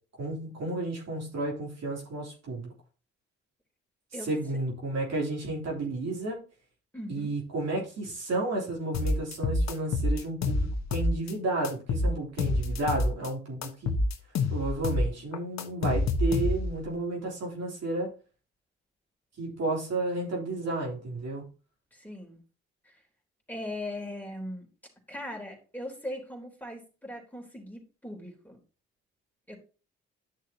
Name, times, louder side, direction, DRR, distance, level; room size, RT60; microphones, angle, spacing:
voice 1, 0.2-2.7 4.2-6.4 7.1-14.0 14.5-18.1 19.4-21.5, right 2 dB, 60° right, -2 dB, 3.4 m, -32 dB
voice 2, 6.9-7.3 21.9-22.4 22.8-23.0 23.5-24.7 25.1-28.6 29.5-29.6, left 1 dB, 5° left, 1 dB, 3.5 m, -39 dB
sound 1, 8.9-11.3 11.6-13.3 13.6-16.8, left 2 dB, 65° left, 1.2 m, -27 dB
11.0 x 6.4 x 2.8 m, 0.36 s
hypercardioid pair, 45°, 30 cm